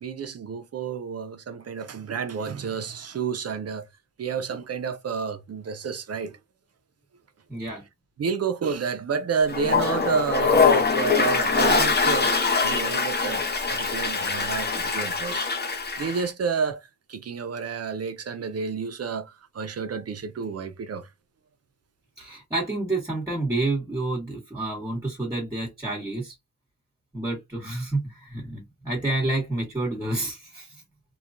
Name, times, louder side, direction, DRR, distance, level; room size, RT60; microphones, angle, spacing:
voice 1, 0.0-3.9 4.2-6.4 8.2-12.3 12.6-13.4 13.7-15.5 16.0-21.1, right 6 dB, 50° right, 0.5 m, -30 dB
voice 2, 7.5-7.8 22.2-26.3 27.1-30.7, right 2 dB, 10° right, 1.2 m, -29 dB
Toilet flush, 9.5-16.3, left 4 dB, 30° left, 0.7 m, -23 dB
3.1 x 2.2 x 2.5 m
wide cardioid pair, 140°, 32 cm